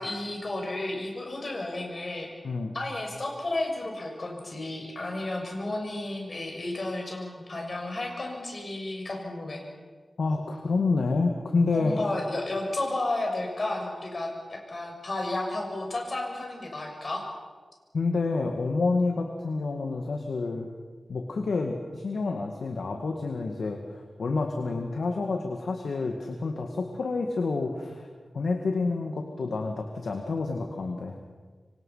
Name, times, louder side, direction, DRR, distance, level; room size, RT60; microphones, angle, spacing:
voice 1, 0.0-2.3 2.7-9.6 11.7-17.2, left 2 dB, 45° left, 1 dB, 6.6 m, -32 dB
voice 2, 2.4-2.7 10.2-12.1 17.9-20.7 21.1-28.1 28.3-31.2, left 3 dB, 80° left, 3 dB, 2.1 m, -28 dB
26.5 x 25.0 x 5.8 m, 1.5 s
wide cardioid pair, 95°, 0 cm